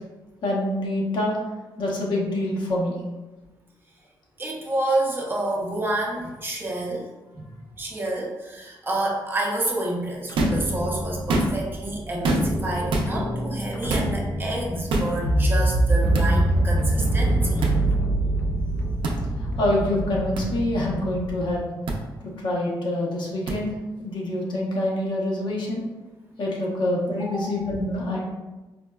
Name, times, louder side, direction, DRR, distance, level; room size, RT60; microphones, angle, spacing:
voice 1, 0.4-1.4 1.8-2.9 19.4-21.6 22.4-23.7 24.0-25.8 26.4-28.2, left 1 dB, 65° left, -3 dB, 0.8 m, -26 dB
voice 2, 4.4-7.1 7.3-7.5 7.8-17.6 27.2-27.5, right 2 dB, 25° right, -2 dB, 0.6 m, -29 dB
sound 1, 10.3-21.6, right 1 dB, 30° left, 0.3 m, -25 dB
sound 2, 10.3-10.7 11.2-11.7 12.2-12.6 12.9-13.1 13.9-14.1 14.9-15.1 16.1-16.3 17.6-17.8 19.0-19.2 20.4-20.5 21.9-22.0 23.5-23.6, right 2 dB, 75° right, 0.5 m, -24 dB
4.2 x 2.0 x 2.3 m, 1.1 s
cardioid pair, 105°, 8 cm